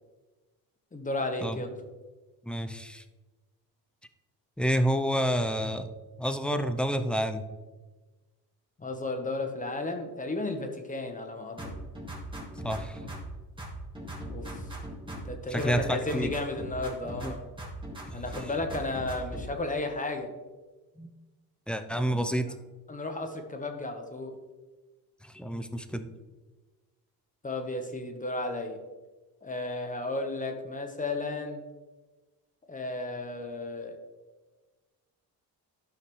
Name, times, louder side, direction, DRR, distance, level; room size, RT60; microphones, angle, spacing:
voice 1, 0.9-1.8 8.8-11.6 14.3-14.6 15.2-17.5 18.1-20.3 22.9-24.4 27.4-28.8 29.4-31.6 32.7-34.0, left 2 dB, 20° left, 4 dB, 1.2 m, -33 dB
voice 2, 2.5-3.0 4.6-5.9 6.2-7.4 12.6-13.0 15.5-16.3 17.2-17.3 21.0-21.1 21.7-22.5 25.2-26.1, equal, 5° left, 8 dB, 0.6 m, -29 dB
sound 1, 11.6-13.3 13.6-15.3 15.6-17.3 17.6-19.5, right 1 dB, 15° right, 2.0 m, -39 dB
12.0 x 5.6 x 3.2 m, 1.2 s
cardioid pair, 100°, 39 cm